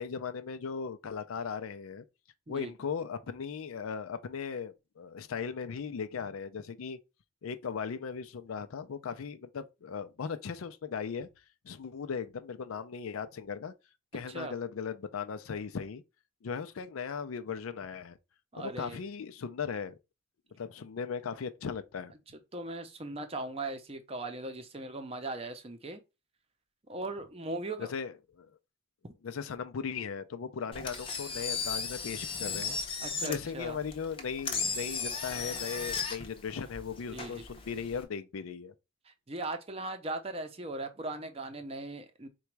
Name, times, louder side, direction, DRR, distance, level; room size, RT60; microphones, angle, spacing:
voice 1, 0.0-2.0 2.5-7.0 7.4-11.3 11.6-13.7 14.1-16.0 16.4-18.2 18.5-20.0 20.6-22.1 27.8-28.5 29.2-32.8 33.2-38.7, left 6 dB, 85° left, 0.4 m, -37 dB
voice 2, 18.5-19.0 22.5-26.0 26.9-27.9 33.0-33.8 37.1-37.4 39.1-42.3, right 2 dB, 30° right, 0.6 m, -39 dB
Engine, 30.7-38.0, left 5 dB, 25° left, 0.6 m, -36 dB
3.9 x 2.3 x 4.6 m
head